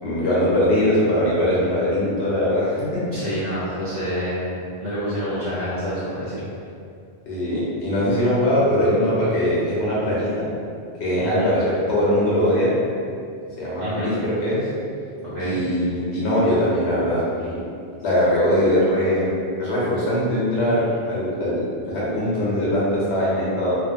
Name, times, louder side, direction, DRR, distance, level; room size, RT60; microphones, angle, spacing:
voice 1, 0.0-3.0 7.3-10.5 11.0-12.7 13.6-14.7 15.4-17.6 18.0-23.8, equal, 80° left, -7 dB, 1.0 m, -21 dB
voice 2, 3.1-4.5 4.8-6.4 11.2-11.5 13.8-14.2 15.2-15.6, equal, 60° right, -15 dB, 0.9 m, -28 dB
2.4 x 2.3 x 2.6 m, 2.4 s
omnidirectional pair, 1.1 m